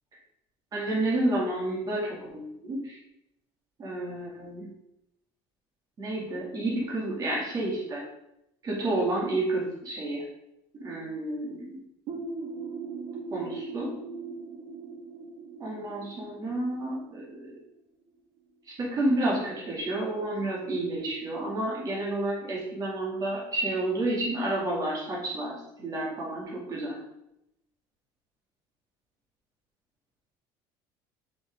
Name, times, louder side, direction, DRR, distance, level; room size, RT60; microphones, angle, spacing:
voice 1, 0.7-3.0 3.8-4.7 6.0-8.1 8.6-10.3 10.7-11.8 13.3-13.9 15.6-17.5 18.8-27.0, right 1 dB, 35° right, -3 dB, 2.2 m, -30 dB
sound 1, 12.1-17.6, right 4 dB, 70° right, 1.6 m, -40 dB
6.3 x 5.6 x 3.5 m, 0.83 s
cardioid pair, 125°, 11 cm